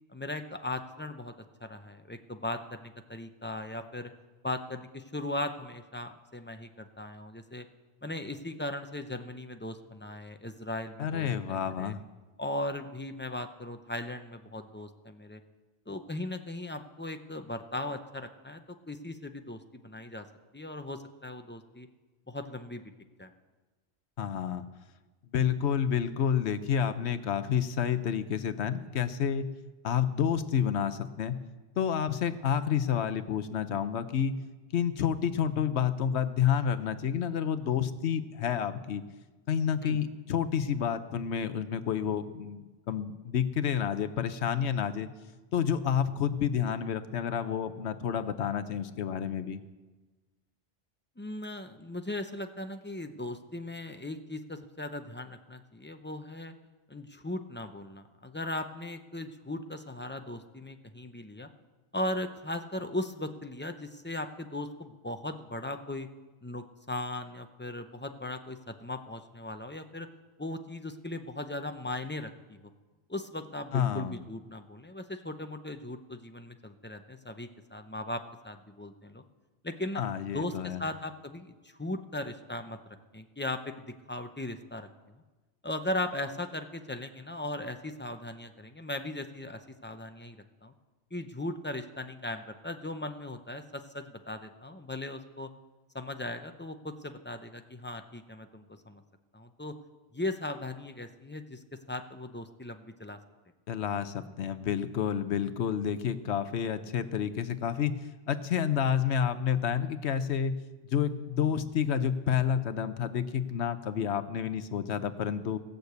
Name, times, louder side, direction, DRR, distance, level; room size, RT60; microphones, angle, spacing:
voice 1, 0.1-1.3 1.6-4.1 4.4-7.6 8.0-11.9 12.4-15.4 15.9-20.3 20.5-21.9 22.3-22.8 23.2-23.3 39.8-40.0 51.2-56.5 56.9-61.5 61.9-66.1 66.4-70.1 70.4-72.7 73.1-79.2 79.6-80.0 80.3-82.8 83.1-83.7 84.1-84.9 85.6-90.7 91.1-95.5 95.9-99.0 99.3-99.7 100.1-103.2, left 1 dB, 15° left, 7 dB, 0.5 m, -38 dB
voice 2, 11.0-12.0 24.2-24.7 25.3-29.5 29.8-31.4 31.8-34.3 34.7-39.0 39.5-45.1 45.5-49.6 73.7-74.1 79.9-80.8 103.7-107.9 108.3-110.5 110.9-115.6, left 8 dB, 75° left, 12 dB, 1.0 m, -29 dB
17.5 x 6.7 x 8.0 m, 1.2 s
omnidirectional pair, 1.2 m